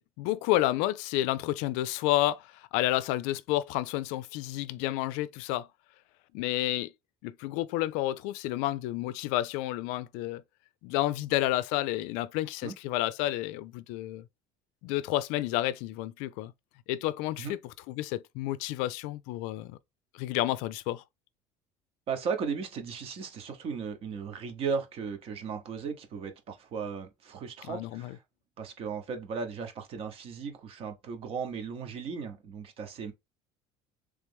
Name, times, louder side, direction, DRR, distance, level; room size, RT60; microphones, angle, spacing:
voice 1, 0.0-5.7 6.3-6.9 7.2-10.4 10.8-14.3 14.8-16.5 16.9-17.6 17.9-19.8 20.1-21.0 27.7-28.2, left 15 dB, 80° left, 0.4 m, -30 dB
voice 2, 22.1-28.2 28.6-33.1, right 5 dB, 50° right, 1.0 m, -36 dB
3.3 x 3.1 x 3.5 m
cardioid pair, 125°, 13 cm